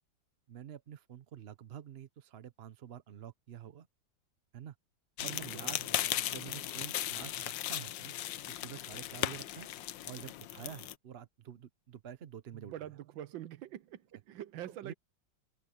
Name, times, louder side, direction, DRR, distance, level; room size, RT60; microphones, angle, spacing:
voice 1, 0.5-3.9 4.5-4.7 5.2-5.8 6.3-8.1 8.5-9.7 10.0-12.7 14.1-14.2 14.8-14.9, right 9 dB, 60° right, 0.6 m, -48 dB
sound 1, 5.2-10.9, left 13 dB, 75° left, 1.4 m, -37 dB
voice 2, 5.5-6.2 12.5-14.9, right 12 dB, 85° right, 1.5 m, -45 dB
omnidirectional pair, 2.1 m